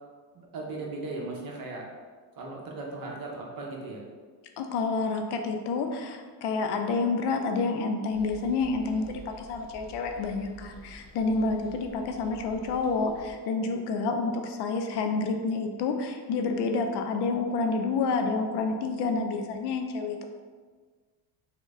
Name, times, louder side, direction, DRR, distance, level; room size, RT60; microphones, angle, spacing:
voice 1, 0.3-1.8 2.4-4.0, right 2 dB, 50° right, -1 dB, 0.8 m, -37 dB
voice 2, 4.6-20.3, left 4 dB, 60° left, 4 dB, 0.5 m, -29 dB
sound 1, 8.1-13.3, right 1 dB, 20° left, 0.8 m, -49 dB
3.1 x 2.1 x 3.5 m, 1.5 s
cardioid pair, 100°, 46 cm